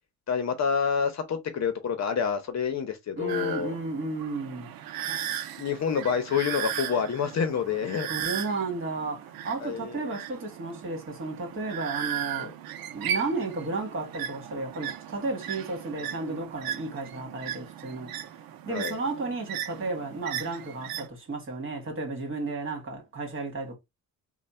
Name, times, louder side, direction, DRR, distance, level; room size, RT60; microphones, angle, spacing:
voice 1, 0.3-3.7 5.6-8.1 9.6-10.0 12.4-12.5 18.7-19.0, left 6 dB, 50° left, 0.8 m, -28 dB
voice 2, 3.2-4.7 8.1-12.5 12.9-18.1 18.7-23.8, right 3 dB, 35° right, 1.8 m, -33 dB
sound 1, 3.3-21.1, right 10 dB, 85° right, 0.6 m, -37 dB
3.2 x 2.3 x 4.3 m
cardioid pair, 115°, 35 cm